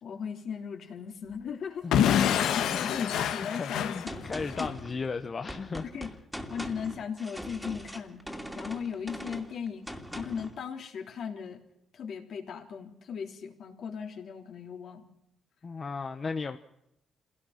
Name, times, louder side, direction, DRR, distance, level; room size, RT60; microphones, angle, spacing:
voice 1, 0.0-1.9 2.5-4.2 4.6-4.7 5.9-6.1 6.5-8.2 8.5-9.9 10.1-11.6 11.9-15.1, left 7 dB, 65° left, 3.4 m, -37 dB
voice 2, 1.8-2.5 2.8-5.9 15.6-16.6, left 4 dB, 35° left, 1.1 m, -35 dB
Explosion / Shatter, 1.9-4.7, left 9 dB, 85° left, 1.3 m, -26 dB
Gunshot gunfire, 4.1-10.6, equal, ahead, 2.6 m, -41 dB
27.0 x 17.5 x 5.9 m
cardioid pair, 90°, 0 cm